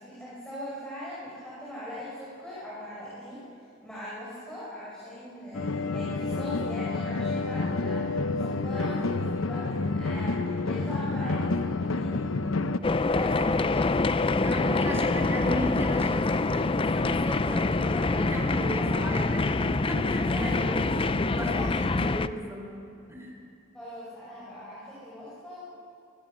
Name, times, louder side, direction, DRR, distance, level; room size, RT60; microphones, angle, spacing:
voice 1, 0.0-3.4 3.8-12.2 13.1-14.3 14.6-14.9 20.3-20.9 21.5-21.7 23.7-25.6, equal, 5° left, -9 dB, 5.4 m, -40 dB
sound 1, 5.5-12.8, left 3 dB, 85° left, 0.8 m, -29 dB
sound 2, 12.8-22.3, left 3 dB, 25° left, 0.5 m, -25 dB
voice 2, 13.3-13.9 14.4-20.8 21.1-22.7 23.1-23.3, equal, 15° right, 0 dB, 4.5 m, -35 dB
23.5 x 22.5 x 6.2 m, 2.5 s
head